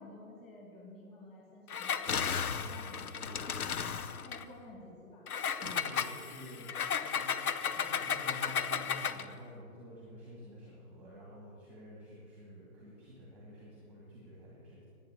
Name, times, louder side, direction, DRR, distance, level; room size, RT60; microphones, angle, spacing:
voice 1, 0.0-3.9 4.2-5.2, left 2 dB, 15° left, -3 dB, 2.6 m, -53 dB
Engine, 1.7-4.4 5.3-9.3, left 7 dB, 75° left, 0.9 m, -34 dB
voice 2, 5.6-6.7 7.0-7.3 7.7-14.9, equal, 5° right, -5 dB, 1.4 m, -49 dB
10.5 x 9.1 x 8.0 m, 2.7 s
hypercardioid pair, 155°, 45 cm